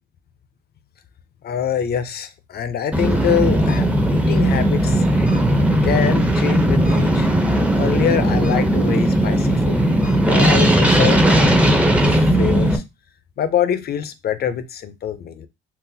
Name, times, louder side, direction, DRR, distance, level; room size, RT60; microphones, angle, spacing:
voice 1, 1.4-5.1 5.8-7.3 7.8-9.8 10.3-12.8 13.4-15.5, left 8 dB, 50° left, 0.5 m, -25 dB
sound 1, 2.9-12.8, right 1 dB, 5° right, 0.5 m, -17 dB
3.9 x 2.0 x 2.6 m
cardioid pair, 90°, 20 cm